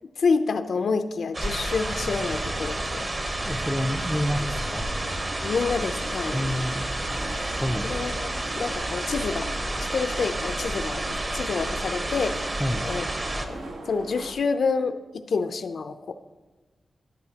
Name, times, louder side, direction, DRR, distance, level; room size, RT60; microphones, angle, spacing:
voice 1, 0.2-3.1 5.4-6.4 7.8-9.5 9.8-11.0 11.3-12.5 12.8-13.1 13.3-16.1, left 4 dB, 70° left, 9 dB, 0.5 m, -28 dB
sound 1, 1.3-13.5, right 1 dB, 30° right, 0.9 m, -30 dB
sound 2, 2.3-14.3, right 2 dB, 85° right, 1.1 m, -41 dB
voice 2, 3.4-4.9 6.3-6.9 7.6-7.9 12.6-12.8, equal, 5° left, 3 dB, 0.4 m, -28 dB
13.0 x 10.5 x 2.8 m, 1.3 s
wide cardioid pair, 160°, 0 cm